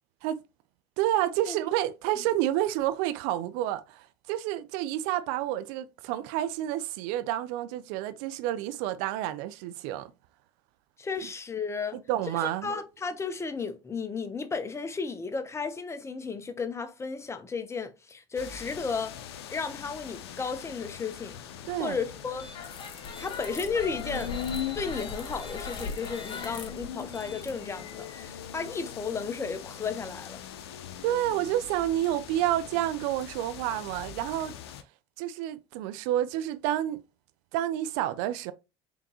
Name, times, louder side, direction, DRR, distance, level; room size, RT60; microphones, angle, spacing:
voice 1, 1.0-10.1 11.9-12.7 21.6-22.0 31.0-34.5 35.2-37.0 37.5-38.5, right 13 dB, 70° right, 0.4 m, -29 dB
voice 2, 11.0-12.0 12.4-19.2 19.5-21.4 21.8-22.5 23.2-24.3 24.7-30.4, left 5 dB, 20° left, 0.8 m, -34 dB
sound 1, 18.4-34.8, left 9 dB, 90° left, 0.5 m, -41 dB
sound 2, 22.3-28.3, left 4 dB, 40° left, 1.3 m, -40 dB
3.6 x 3.6 x 2.9 m
hypercardioid pair, 85°, 13 cm